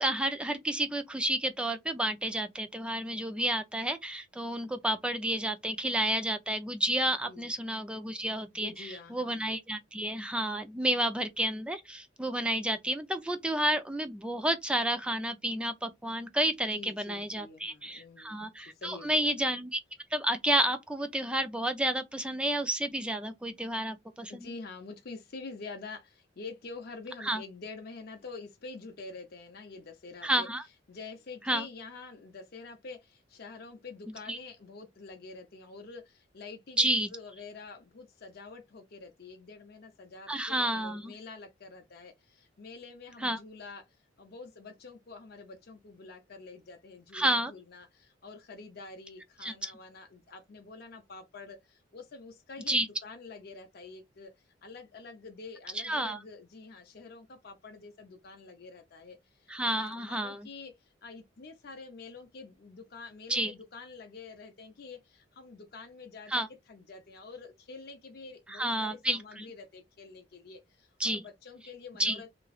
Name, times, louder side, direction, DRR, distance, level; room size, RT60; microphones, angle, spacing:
voice 1, 0.0-19.8 20.1-24.5 27.2-27.4 30.2-30.6 31.5-31.7 34.3-34.4 36.8-37.1 40.3-41.1 43.2-43.4 47.1-47.5 49.4-49.5 52.7-52.9 55.7-56.2 59.5-60.5 63.3-63.5 66.3-66.5 68.5-69.5 71.0-71.2 72.0-72.2, right 1 dB, 5° right, 0.3 m, -30 dB
voice 2, 8.5-9.5 16.7-18.5 18.7-19.4 24.3-30.5 30.9-43.9 44.2-54.3 54.6-72.3, left 4 dB, 55° left, 0.6 m, -47 dB
3.0 x 2.5 x 2.3 m
head